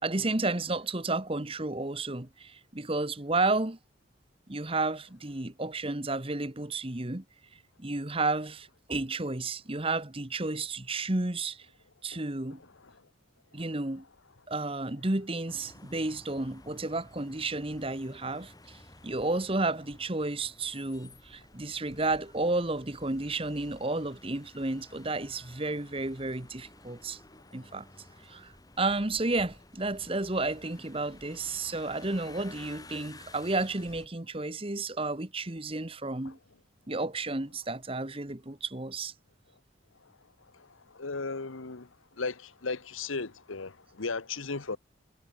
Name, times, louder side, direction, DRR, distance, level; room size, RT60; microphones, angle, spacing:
voice 1, 0.0-3.8 4.5-7.2 7.8-11.7 12.0-12.6 13.5-14.0 14.5-18.8 19.0-27.2 27.5-27.8 28.2-36.4 36.9-39.1, right 2 dB, 30° right, 1.3 m, -32 dB
sound 1, 15.5-34.1, left 2 dB, 20° left, 2.1 m, -53 dB
voice 2, 40.5-41.9 42.2-44.8, left 4 dB, 85° left, 1.3 m, -36 dB
head